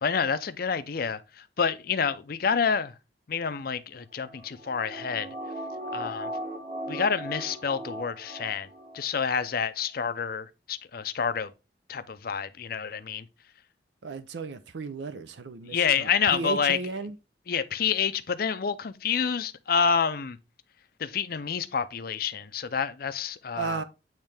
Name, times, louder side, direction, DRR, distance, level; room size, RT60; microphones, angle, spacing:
voice 1, 0.0-2.9 3.3-5.3 5.9-6.3 6.9-8.7 8.9-11.5 11.9-13.3 15.7-16.8 17.5-20.4 21.0-23.8, left 6 dB, 55° left, 0.5 m, -28 dB
sound 1, 4.2-9.0 9.3-9.4, right 1 dB, 40° right, 1.3 m, -38 dB
voice 2, 14.0-17.1 23.6-23.8, right 4 dB, 75° right, 0.5 m, -35 dB
8.8 x 3.2 x 3.3 m
head